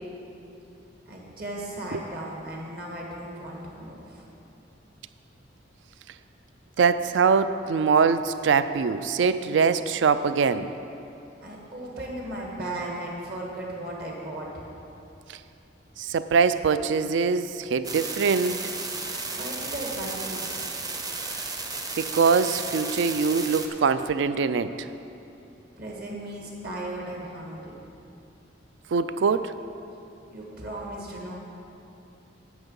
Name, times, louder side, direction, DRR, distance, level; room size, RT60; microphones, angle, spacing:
voice 1, 1.1-4.2 11.4-14.7 19.3-20.7 25.8-27.8 30.3-31.3, right 1 dB, 55° right, -2 dB, 1.6 m, -36 dB
voice 2, 6.8-10.7 16.0-18.6 22.0-24.9 28.9-29.5, right 5 dB, 70° right, 13 dB, 0.4 m, -23 dB
sound 1, 17.8-23.7, right 3 dB, 20° right, 0.6 m, -33 dB
9.4 x 7.2 x 5.4 m, 2.8 s
head